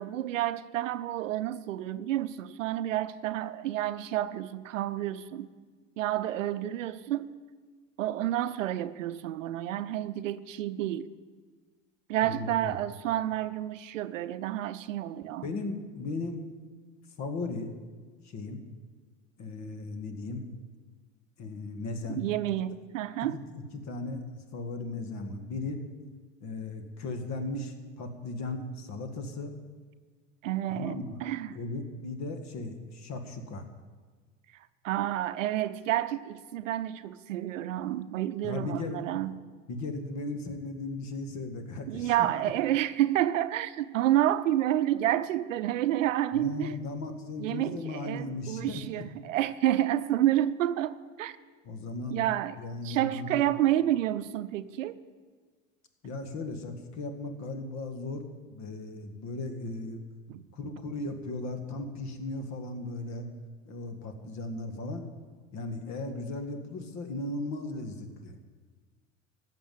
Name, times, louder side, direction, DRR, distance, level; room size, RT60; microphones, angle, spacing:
voice 1, 0.0-5.5 6.0-7.4 8.0-11.1 12.1-15.5 22.1-23.4 30.4-31.6 34.5-39.4 41.9-46.7 47.4-51.4 52.1-52.6 52.8-55.0 60.3-60.5, right 13 dB, 80° right, 14 dB, 0.7 m, -29 dB
voice 2, 12.2-12.7 15.4-16.4 17.2-17.7 18.2-18.6 19.4-20.5 21.4-22.2 23.2-23.4 23.8-25.8 26.4-29.5 30.7-31.2 31.6-33.6 38.4-39.0 39.7-42.1 46.3-48.8 51.6-52.2 52.6-53.4 56.0-60.0 60.5-63.3 63.6-65.0 65.5-68.3, left 2 dB, 45° left, 7 dB, 1.9 m, -36 dB
14.5 x 6.0 x 9.3 m, 1.4 s
hypercardioid pair, 75°, 38 cm